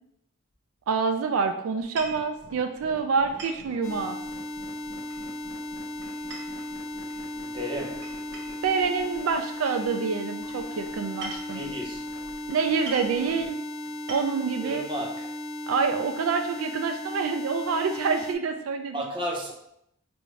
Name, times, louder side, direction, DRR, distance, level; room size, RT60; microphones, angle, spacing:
voice 1, 0.9-4.2 8.6-11.6 12.5-13.6 14.1-14.9 15.7-19.0, right 5 dB, 80° right, 7 dB, 0.4 m, -27 dB
sound 1, 1.8-13.5, left 1 dB, 55° left, 0.7 m, -49 dB
sound 2, 1.8-2.3 3.4-3.7 5.1-5.5 6.0-7.2 8.0-8.7 9.7-9.8 11.0-11.7 12.5-12.6 12.9-13.2 13.9-14.5, right 2 dB, 55° right, 0.8 m, -41 dB
sound 3, 3.8-18.3, left 1 dB, 85° left, 0.8 m, -36 dB
voice 2, 7.4-8.1 11.5-12.1 14.6-15.3 18.9-19.5, equal, 25° right, -1 dB, 0.7 m, -33 dB
4.7 x 2.6 x 3.1 m, 0.78 s
head